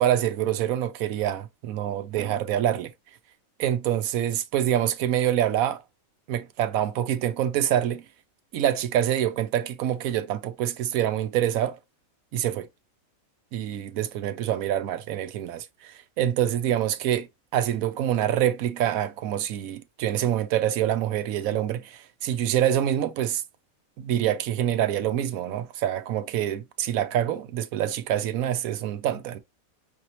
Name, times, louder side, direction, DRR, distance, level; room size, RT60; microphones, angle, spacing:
voice 1, 0.0-2.9 3.6-5.8 6.3-8.0 8.5-11.8 12.3-12.7 13.5-17.3 17.5-23.4 24.0-29.4, right 11 dB, 80° right, 1.0 m, -26 dB
5.7 x 2.9 x 2.8 m
omnidirectional pair, 1.5 m